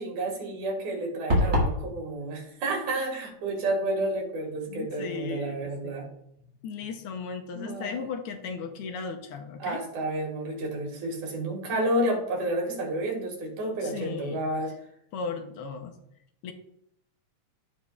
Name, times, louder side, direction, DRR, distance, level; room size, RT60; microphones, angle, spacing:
voice 1, 0.0-6.1 7.5-8.1 9.6-14.7, right 1 dB, 85° right, 1 dB, 3.3 m, -30 dB
sound 1, 1.3-1.8, left 1 dB, 30° right, 2.0 m, -22 dB
voice 2, 4.7-6.0 6.6-9.8 13.8-14.4 15.1-15.9 16.4-16.5, left 5 dB, 70° left, 6 dB, 1.4 m, -36 dB
15.0 x 5.1 x 2.3 m, 0.76 s
omnidirectional pair, 3.3 m